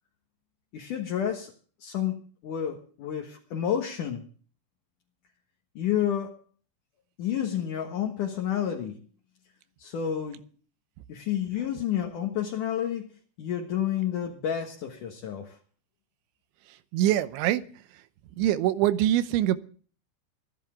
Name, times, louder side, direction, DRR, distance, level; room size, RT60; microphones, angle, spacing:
voice 1, 0.7-1.5 1.8-4.2 5.8-6.3 7.2-9.0 9.8-10.4 11.1-13.0 13.4-15.6, left 9 dB, 60° left, 1 dB, 2.5 m, -30 dB
voice 2, 16.9-17.6 18.4-19.6, right 13 dB, 85° right, 13 dB, 3.2 m, -23 dB
25.0 x 11.0 x 3.7 m, 0.41 s
omnidirectional pair, 5.3 m